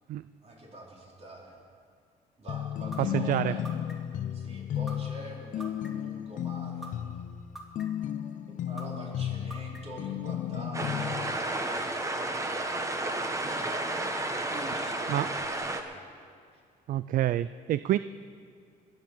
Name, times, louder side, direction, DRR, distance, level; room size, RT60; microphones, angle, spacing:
voice 1, 0.4-1.6 2.4-3.6 4.3-6.9 8.5-11.3 11.6-13.0 14.3-16.0, right 1 dB, 40° right, -3 dB, 4.4 m, -45 dB
sound 1, 2.5-11.4, left 10 dB, 50° left, 0.5 m, -34 dB
sound 2, 2.9-3.0 3.6-4.2 4.9-5.0 5.6-6.1 6.8-6.9 7.6-8.1 8.8-8.9 9.5-10.0, right 2 dB, ahead, 2.5 m, -42 dB
voice 2, 3.0-3.5 15.1-15.3 16.9-18.0, right 13 dB, 55° right, 15 dB, 0.4 m, -27 dB
sound 3, 10.7-15.8, right 2 dB, 20° right, 1.3 m, -32 dB
20.5 x 7.5 x 7.5 m, 2.3 s
cardioid pair, 110°, 17 cm